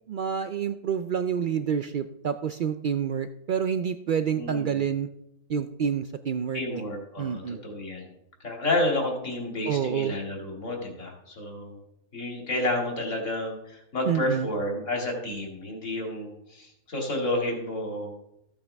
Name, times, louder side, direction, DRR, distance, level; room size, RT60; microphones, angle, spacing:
voice 1, 0.1-5.1 5.5-6.8 7.2-7.6 9.7-10.1 14.1-14.5, right 7 dB, 75° right, 10 dB, 0.4 m, -28 dB
voice 2, 4.4-4.8 6.5-8.1 8.4-11.8 12.1-18.2, left 1 dB, 65° left, 0 dB, 2.7 m, -30 dB
14.5 x 8.7 x 3.4 m, 0.82 s
omnidirectional pair, 1.4 m